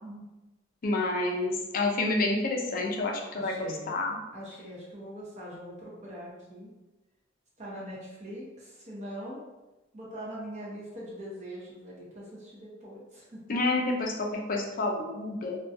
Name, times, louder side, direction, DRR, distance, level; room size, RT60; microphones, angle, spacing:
voice 1, 0.8-4.2 13.5-15.6, left 2 dB, 45° left, 1 dB, 0.4 m, -29 dB
voice 2, 3.3-4.0 4.3-6.7 7.6-9.4 9.9-13.4, equal, 35° right, -5 dB, 0.8 m, -42 dB
2.5 x 2.2 x 2.5 m, 1.1 s
head